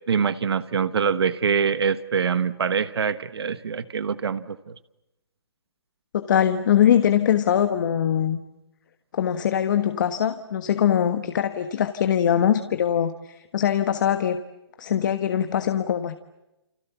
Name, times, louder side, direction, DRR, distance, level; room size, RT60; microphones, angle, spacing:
voice 1, 0.0-4.7, right 6 dB, 70° right, 12 dB, 1.4 m, -24 dB
voice 2, 6.1-8.4 9.1-14.4 14.8-16.2, left 9 dB, 45° left, 9 dB, 1.5 m, -22 dB
29.5 x 26.0 x 7.2 m, 0.95 s
hypercardioid pair, 155°, 14 cm